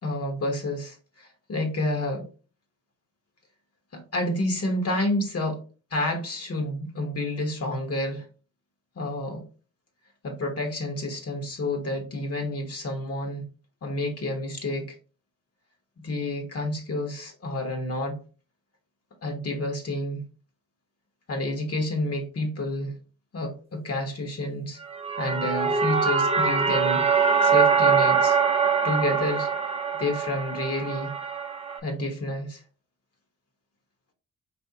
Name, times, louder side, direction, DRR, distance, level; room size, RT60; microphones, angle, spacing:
voice 1, 0.0-2.3 3.9-5.6 5.9-8.2 9.0-9.4 10.2-13.4 13.8-14.8 16.0-18.2 19.2-20.2 21.3-23.0 23.3-24.8 25.2-27.1 27.4-28.4 28.8-29.5 30.0-31.1 31.8-32.6, left 1 dB, 45° left, 1.1 m, -29 dB
sound 1, 24.8-31.8, right 6 dB, 20° right, 0.6 m, -23 dB
4.4 x 3.0 x 2.7 m
cardioid pair, 90°, 34 cm